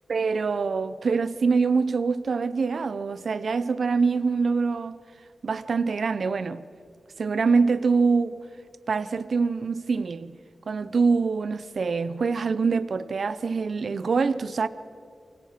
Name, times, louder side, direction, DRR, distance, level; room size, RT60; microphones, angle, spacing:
voice 1, 0.1-5.0 5.4-6.6 7.2-8.5 8.9-10.4 10.7-14.7, right 4 dB, 65° right, 0.7 m, -24 dB
28.5 x 28.5 x 5.9 m
wide cardioid pair, 135°, 0 cm